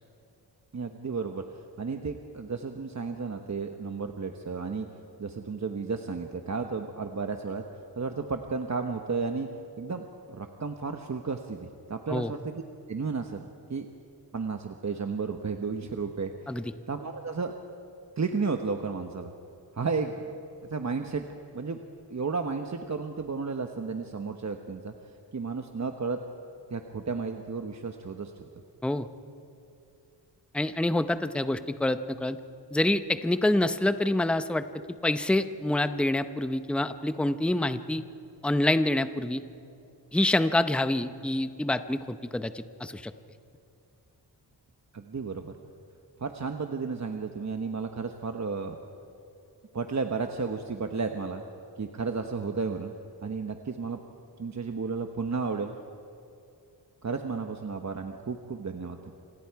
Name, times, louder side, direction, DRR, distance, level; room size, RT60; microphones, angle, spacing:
voice 1, 0.7-1.4 1.8-4.9 5.2-7.6 8.0-9.5 9.8-12.6 12.9-13.4 13.7-13.9 14.3-16.6 16.9-17.5 18.2-19.3 19.7-20.3 20.6-21.2 21.5-21.8 22.1-24.9 25.3-26.2 26.7-28.3 44.9-45.5 46.2-48.8 49.7-51.4 51.8-52.9 53.2-54.0 54.4-55.8 57.0-59.1, right 4 dB, 40° right, 5 dB, 1.1 m, -33 dB
voice 2, 30.5-32.4 32.7-34.6 35.0-38.0 38.4-39.4 40.1-43.1, left 1 dB, 5° left, 10 dB, 0.7 m, -26 dB
28.5 x 25.5 x 4.7 m, 2.6 s
wide cardioid pair, 125°, 41 cm